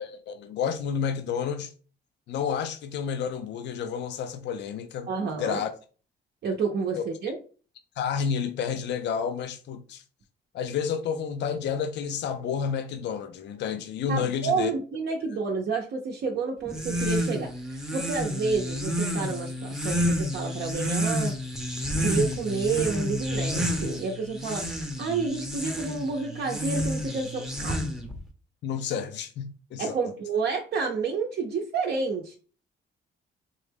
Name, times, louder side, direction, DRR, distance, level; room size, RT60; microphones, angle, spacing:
voice 1, 0.0-1.7 2.3-5.1 5.4-5.7 6.9-7.0 8.0-10.0 10.5-14.7 28.6-30.0, left 7 dB, 65° left, 0.4 m, -30 dB
voice 2, 5.1-5.6 6.4-7.4 14.1-21.4 22.0-27.8 29.8-32.4, right 4 dB, 55° right, 0.6 m, -29 dB
sound 1, 16.7-28.2, equal, 5° right, 0.7 m, -30 dB
3.6 x 2.1 x 3.4 m
cardioid pair, 90°, 20 cm